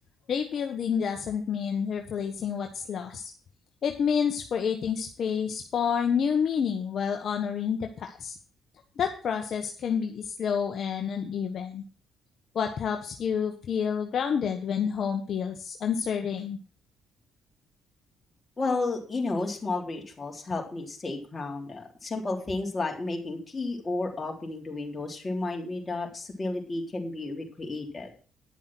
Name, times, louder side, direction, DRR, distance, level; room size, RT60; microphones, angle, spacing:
voice 1, 0.3-3.2 3.8-8.3 9.0-11.8 12.5-16.6, left 7 dB, 60° left, 4 dB, 1.3 m, -29 dB
voice 2, 18.6-28.1, left 3 dB, 25° left, 0 dB, 3.6 m, -32 dB
10.5 x 7.1 x 6.1 m, 0.39 s
cardioid pair, 80°, 0 cm